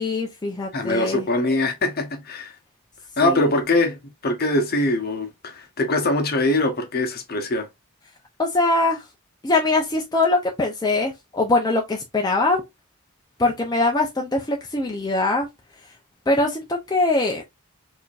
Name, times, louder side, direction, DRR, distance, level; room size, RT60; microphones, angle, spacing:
voice 1, 0.0-1.3 3.2-3.5 8.4-9.1 9.4-12.6 13.4-15.5 16.3-17.4, left 2 dB, 20° left, 0.5 m, -22 dB
voice 2, 0.7-2.5 3.2-7.7, left 2 dB, 45° left, 0.9 m, -23 dB
4.8 x 2.7 x 2.4 m
head